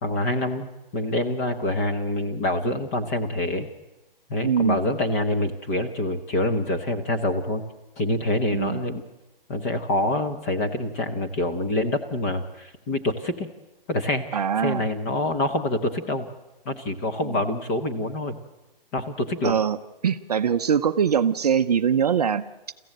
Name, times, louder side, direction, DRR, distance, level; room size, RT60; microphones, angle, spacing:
voice 1, 0.0-3.7 4.3-7.6 8.0-9.0 9.5-13.5 13.9-16.3 16.6-18.4 18.9-19.6, left 1 dB, 15° left, 5 dB, 0.9 m, -26 dB
voice 2, 4.4-4.8 8.5-8.8 14.3-14.8 17.2-17.4 19.4-19.8 20.0-22.7, right 7 dB, 40° right, 9 dB, 0.6 m, -23 dB
24.0 x 15.0 x 7.8 m, 1.0 s
hypercardioid pair, 165°, 29 cm